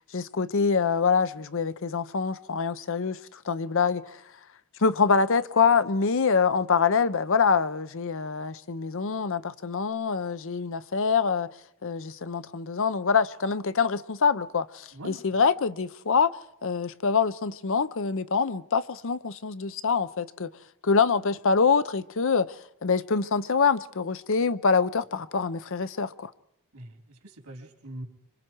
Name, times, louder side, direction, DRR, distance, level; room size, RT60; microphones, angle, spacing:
voice 1, 0.1-4.2 4.8-11.5 11.8-16.3 16.6-20.5 20.8-26.3, left 5 dB, 60° left, 0.7 m, -25 dB
voice 2, 14.9-15.5 26.7-28.0, right 1 dB, 85° right, 3.8 m, -43 dB
26.0 x 25.5 x 4.6 m
head